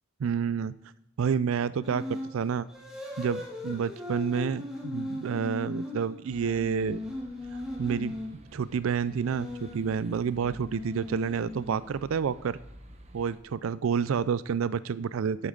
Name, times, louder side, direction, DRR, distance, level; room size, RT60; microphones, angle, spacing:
voice 1, 0.2-0.7 1.2-2.7 3.2-7.0 7.8-8.1 8.5-12.6 13.1-15.5, right 6 dB, 85° right, 17 dB, 0.4 m, -29 dB
sound 1, 1.8-2.3 2.7-8.3 9.1-12.0, left 2 dB, 5° right, 2.2 m, -38 dB
sound 2, 6.3-13.4, right 1 dB, 30° right, 1.1 m, -52 dB
11.0 x 8.5 x 3.8 m, 0.80 s
head